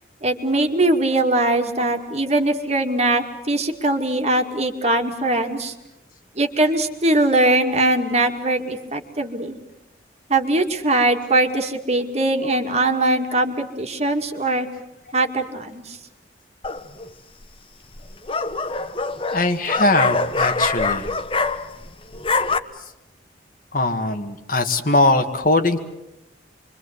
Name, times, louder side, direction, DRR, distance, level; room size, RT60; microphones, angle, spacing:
voice 1, 0.2-5.7 6.4-9.6 10.3-14.7 15.1-16.0, right 2 dB, 35° right, 4 dB, 2.2 m, -21 dB
sound 1, 16.6-17.1 18.0-21.9 22.1-22.6, left 3 dB, 30° left, 1.1 m, -24 dB
voice 2, 19.3-21.1 23.7-25.8, left 2 dB, 50° left, 7 dB, 1.9 m, -20 dB
27.5 x 24.0 x 8.1 m, 0.93 s
head